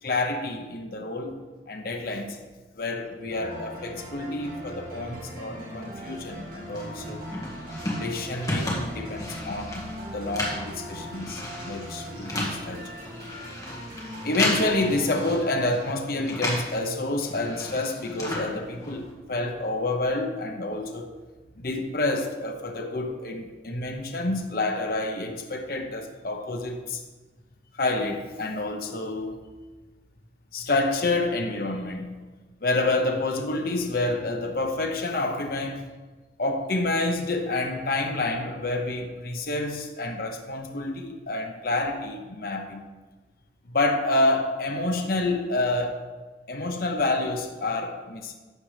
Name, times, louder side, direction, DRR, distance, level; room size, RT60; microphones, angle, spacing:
voice 1, 0.0-1.4 1.7-2.4 2.8-7.2 8.0-12.8 14.2-21.1 21.6-27.0 27.8-29.4 30.5-32.3 32.6-35.9 36.4-42.9 43.7-46.0 46.5-48.3, left 2 dB, 55° left, 3 dB, 0.9 m, -28 dB
sound 1, 3.3-15.4, equal, 50° right, 2.4 m, -40 dB
sound 2, 6.8-16.8 17.1-19.1, left 1 dB, 20° left, 1.7 m, -34 dB
11.5 x 7.2 x 3.4 m, 1.2 s
head